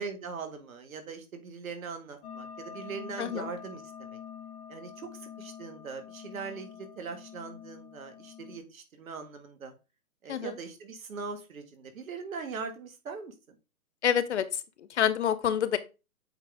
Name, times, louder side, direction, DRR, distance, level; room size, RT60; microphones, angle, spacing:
voice 1, 0.0-4.2 4.7-9.7 10.2-13.6, right 5 dB, 60° right, 6 dB, 1.8 m, -41 dB
sound 1, 2.2-8.6, left 8 dB, 25° left, 1.9 m, -46 dB
voice 2, 3.2-3.5 10.3-10.6 14.0-15.8, left 9 dB, 50° left, 14 dB, 0.7 m, -28 dB
8.0 x 3.8 x 3.6 m, 0.29 s
hypercardioid pair, 140°, 45 cm